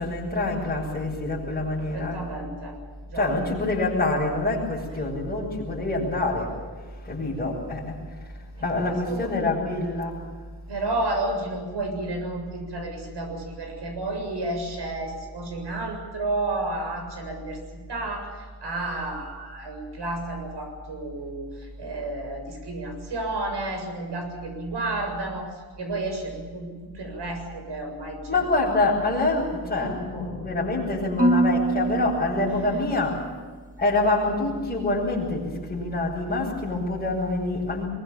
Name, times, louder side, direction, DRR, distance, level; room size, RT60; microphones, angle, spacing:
voice 1, 0.0-2.2 3.1-6.5 7.0-8.0 8.6-10.2 28.3-33.3 33.8-37.9, left 2 dB, 20° left, -9 dB, 7.1 m, -26 dB
voice 2, 1.8-2.8 3.1-3.3 8.6-9.4 10.7-26.7 26.9-28.8 32.5-32.9, right 2 dB, 75° right, 4 dB, 7.4 m, -32 dB
Marimba xylophone / Wood, 31.2-33.4, right 2 dB, 20° right, 1.8 m, -25 dB
23.5 x 23.5 x 7.4 m, 1.5 s
wide cardioid pair, 160°, 42 cm